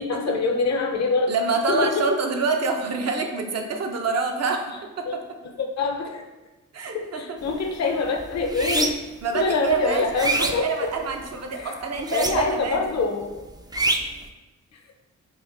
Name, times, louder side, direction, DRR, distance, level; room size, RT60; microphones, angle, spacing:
voice 1, 0.0-1.3 1.7-2.1 5.1-5.2 5.4-6.2 6.9-9.0 9.3-10.9 11.5-11.8 12.1-13.4, left 4 dB, 55° left, 3 dB, 0.6 m, -25 dB
voice 2, 1.3-5.2 6.7-7.4 9.2-12.9, right 4 dB, 50° right, 4 dB, 0.6 m, -26 dB
sound 1, 7.4-7.7 8.1-9.2 9.7-11.3 12.0-12.8 13.0-14.3, right 2 dB, 15° right, 0.3 m, -26 dB
4.8 x 2.5 x 2.5 m, 1.1 s
supercardioid pair, 45°, 33 cm